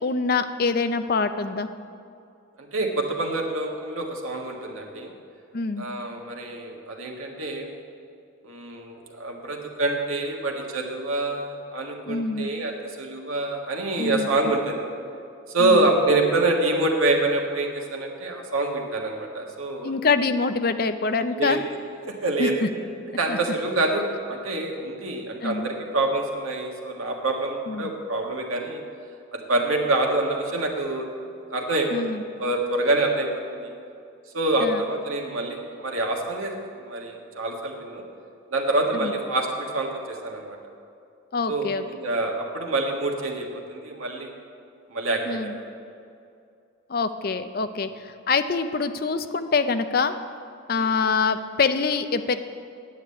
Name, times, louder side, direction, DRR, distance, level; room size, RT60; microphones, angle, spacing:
voice 1, 0.0-1.7 5.5-5.8 12.1-12.5 14.0-14.3 15.6-15.9 19.8-21.6 22.4-22.7 23.3-23.4 25.4-25.7 27.7-27.9 31.9-32.2 34.6-34.8 39.0-39.1 41.3-41.8 45.3-45.6 46.9-50.2 50.7-52.4, left 4 dB, 45° left, 10 dB, 0.5 m, -25 dB
voice 2, 2.6-5.1 5.8-7.7 8.4-14.8 15.5-19.9 21.3-21.6 22.1-22.5 23.2-28.8 29.3-31.0 31.5-33.7 34.3-36.5 36.8-38.0 38.5-40.6 41.5-44.3 44.9-45.5 50.7-50.9, right 2 dB, 90° right, 1 dB, 1.6 m, -26 dB
9.4 x 7.5 x 8.4 m, 2.5 s
head